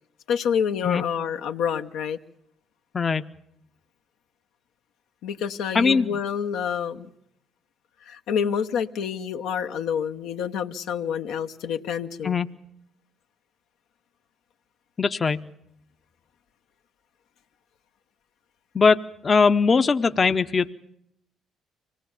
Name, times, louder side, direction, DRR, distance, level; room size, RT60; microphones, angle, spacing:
voice 1, 0.3-2.2 5.2-7.1 8.0-12.4, left 7 dB, 75° left, 5 dB, 0.9 m, -28 dB
voice 2, 5.7-6.2 12.2-12.5 15.0-15.5 18.7-19.0 19.2-20.7, left 5 dB, 40° left, 9 dB, 0.8 m, -20 dB
25.0 x 18.5 x 7.3 m, 0.76 s
supercardioid pair, 60°, 0 cm